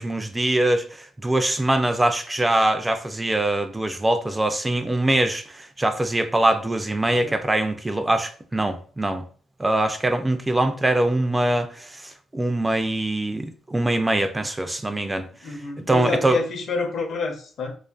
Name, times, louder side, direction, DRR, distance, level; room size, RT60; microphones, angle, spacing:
voice 1, 0.0-9.2 9.6-15.6 15.9-16.4, right 1 dB, 15° right, 0.3 m, -23 dB
voice 2, 15.4-17.7, left 4 dB, 60° left, 0.6 m, -28 dB
2.4 x 2.4 x 2.3 m
cardioid pair, 90°, 0 cm